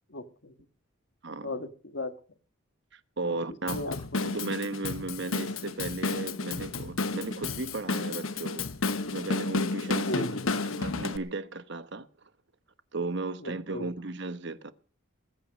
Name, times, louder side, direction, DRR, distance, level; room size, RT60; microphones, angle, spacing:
voice 1, 0.1-0.5 1.4-2.1 3.2-4.0 10.0-10.5 13.4-13.9, left 1 dB, 55° left, 1.5 m, -36 dB
voice 2, 1.2-1.5 2.9-3.9 4.2-8.7 9.1-10.3 10.6-12.1 12.9-14.7, right 3 dB, 55° right, 1.1 m, -35 dB
Drum kit / Drum, 3.7-11.2, left 3 dB, 80° left, 1.1 m, -32 dB
21.0 x 8.8 x 6.4 m
head